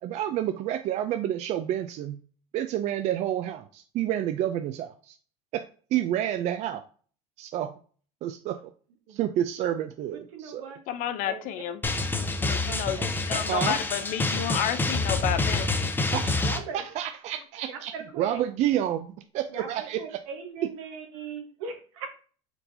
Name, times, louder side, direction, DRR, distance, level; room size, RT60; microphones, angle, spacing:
voice 1, 0.0-2.2 2.5-5.2 5.5-6.8 7.4-7.7 8.2-8.7 9.1-10.7 13.5-13.8 16.1-19.1 19.3-20.2, right 11 dB, 45° right, 0.4 m, -29 dB
voice 2, 10.3-10.8 11.2-11.5 12.7-13.4 16.4-16.8 17.7-18.4 19.5-22.1, right 5 dB, 80° right, 1.2 m, -39 dB
voice 3, 10.9-11.8 12.2-15.9, left 11 dB, 55° left, 0.6 m, -31 dB
Drum, 11.8-16.6, left 2 dB, 10° left, 0.6 m, -27 dB
4.5 x 4.0 x 2.7 m
supercardioid pair, 110°, 16 cm